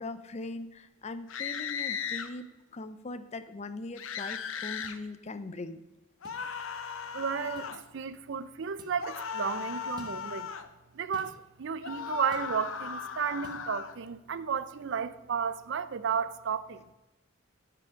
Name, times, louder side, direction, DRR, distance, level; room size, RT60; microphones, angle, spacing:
voice 1, 0.0-2.5 2.7-5.8, left 2 dB, 35° left, 0.5 m, -40 dB
sound 1, 1.3-2.3 4.0-5.0 6.2-7.8 9.0-10.7 11.8-13.9, left 6 dB, 80° left, 0.7 m, -37 dB
sound 2, 4.8-5.0 6.2-6.4 7.6-7.8 8.8-9.0 10.0-10.2 11.1-11.4 12.3-12.5 13.4-13.6, right 1 dB, 20° right, 1.3 m, -51 dB
voice 2, 7.1-10.5 10.9-16.8, right 6 dB, 60° right, 0.5 m, -33 dB
13.0 x 4.8 x 5.0 m
head